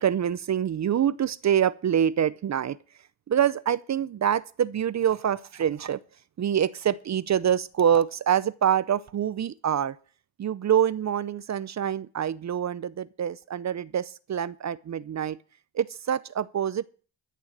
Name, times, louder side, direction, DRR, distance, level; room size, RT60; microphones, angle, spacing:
voice 1, 0.0-2.8 3.3-6.0 6.4-10.0 10.4-15.4 15.7-16.8, right 9 dB, 40° right, 0.6 m, -25 dB
14.0 x 6.8 x 7.4 m
cardioid pair, 105°, 46 cm